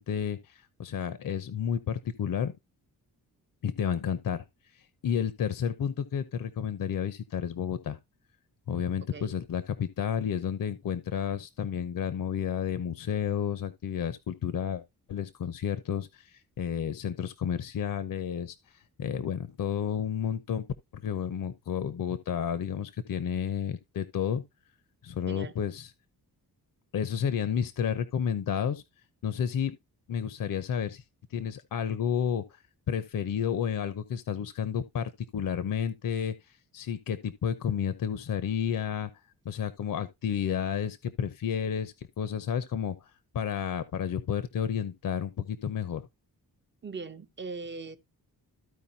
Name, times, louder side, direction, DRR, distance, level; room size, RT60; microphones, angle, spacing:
voice 1, 0.0-2.5 3.6-4.4 4.7-8.0 8.7-14.8 15.1-18.6 19.0-20.6 20.9-24.4 25.0-25.9 26.9-28.8 29.2-29.7 30.1-31.0 31.3-32.4 32.9-36.3 36.7-39.1 39.4-43.1 43.3-46.1, left 8 dB, 60° left, 0.9 m, -31 dB
voice 2, 46.8-48.0, right 4 dB, 30° right, 0.8 m, -40 dB
14.5 x 4.8 x 2.8 m
wide cardioid pair, 170°, 37 cm